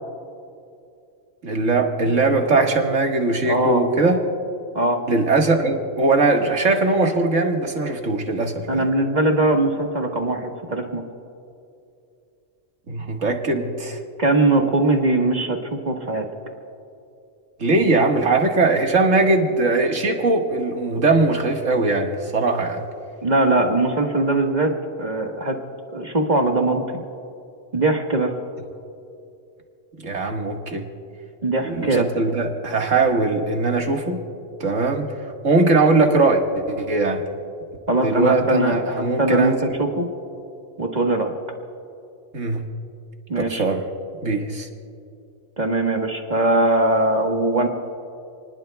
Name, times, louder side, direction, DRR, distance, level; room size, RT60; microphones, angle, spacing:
voice 1, 1.4-4.2 5.1-8.9 12.9-14.0 17.6-22.8 30.0-30.9 31.6-34.2 34.6-35.1 35.4-37.3 38.0-39.6 42.3-42.6 43.4-43.8 44.2-44.7, right 3 dB, 85° right, 2 dB, 2.0 m, -20 dB
voice 2, 3.5-3.8 4.7-5.0 8.7-11.0 14.2-16.3 23.2-25.6 25.9-26.8 27.7-28.3 31.4-32.1 37.9-40.1 40.8-41.3 43.3-43.6 45.6-47.7, right 2 dB, 35° right, 2 dB, 1.5 m, -21 dB
29.5 x 20.0 x 2.3 m, 2.6 s
omnidirectional pair, 1.3 m